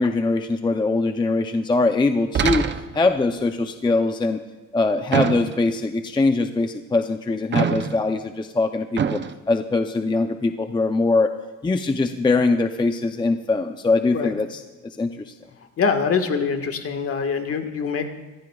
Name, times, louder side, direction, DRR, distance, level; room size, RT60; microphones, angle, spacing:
voice 1, 0.0-2.7 2.9-4.4 4.7-9.2 9.5-11.3 11.6-15.3, left 3 dB, 15° left, 7 dB, 0.6 m, -22 dB
sound 1, 2.3-3.1 5.1-5.8 7.5-8.2 9.0-9.3, right 7 dB, 35° right, 0.6 m, -24 dB
voice 2, 15.8-18.1, left 5 dB, 45° left, 5 dB, 1.6 m, -24 dB
24.5 x 15.5 x 2.4 m, 1.2 s
cardioid pair, 135°, 32 cm